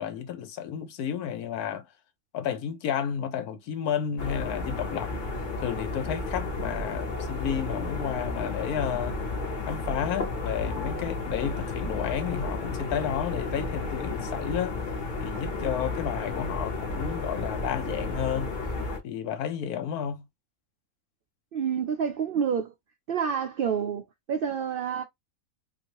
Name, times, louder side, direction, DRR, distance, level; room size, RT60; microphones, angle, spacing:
voice 1, 0.0-1.9 2.3-5.1 5.6-9.2 9.7-14.8 15.2-18.5 19.0-20.2, left 8 dB, 85° left, 1.2 m, -31 dB
sound 1, 4.2-19.0, left 3 dB, 40° left, 0.8 m, -32 dB
voice 2, 21.5-22.7 23.1-25.0, right 7 dB, 90° right, 0.4 m, -28 dB
3.0 x 2.6 x 2.8 m
omnidirectional pair, 1.5 m